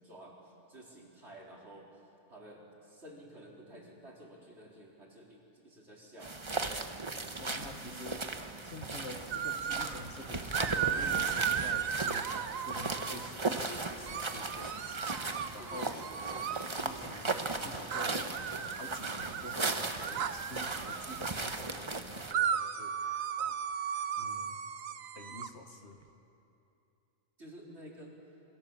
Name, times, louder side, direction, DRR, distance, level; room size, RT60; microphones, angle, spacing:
voice 1, 0.0-2.0 2.3-6.4 15.6-16.6 27.4-28.1, right 1 dB, 50° right, -3 dB, 4.5 m, -52 dB
sound 1, 6.2-22.3, right 3 dB, 25° right, 0.9 m, -37 dB
voice 2, 7.4-8.3 8.6-16.1 16.4-23.6 23.8-24.6 25.2-26.0, left 2 dB, 55° left, 4 dB, 1.9 m, -48 dB
sound 2, 9.3-10.0 10.5-13.3 14.1-16.7 17.9-21.3 22.3-25.5, right 8 dB, 75° right, 1.3 m, -36 dB
27.5 x 23.5 x 7.3 m, 2.7 s
omnidirectional pair, 1.4 m